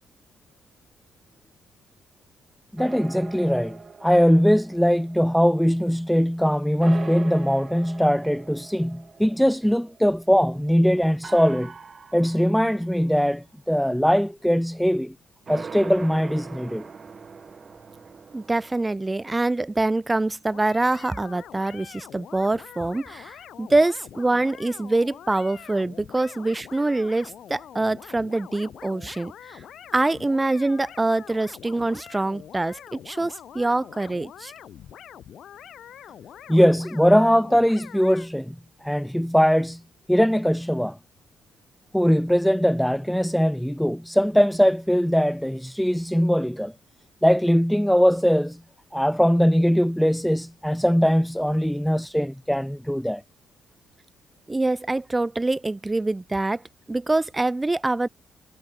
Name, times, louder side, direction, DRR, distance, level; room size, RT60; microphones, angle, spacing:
voice 1, 2.7-11.7 12.1-15.1 15.5-16.9 36.5-38.6 38.8-39.8 40.1-41.0 41.9-46.7 47.2-48.6 48.9-53.2, equal, ahead, 0.5 m, -21 dB
sound 1, 2.8-6.4 6.8-10.6 11.2-13.1 15.5-18.9, right 5 dB, 40° right, 1.9 m, -42 dB
voice 2, 18.3-29.6 29.9-34.5 54.5-56.6 56.9-58.1, right 2 dB, 15° right, 1.0 m, -25 dB
sound 2, 20.5-38.3, left 10 dB, 70° left, 1.4 m, -45 dB
cardioid pair, 90°, 0 cm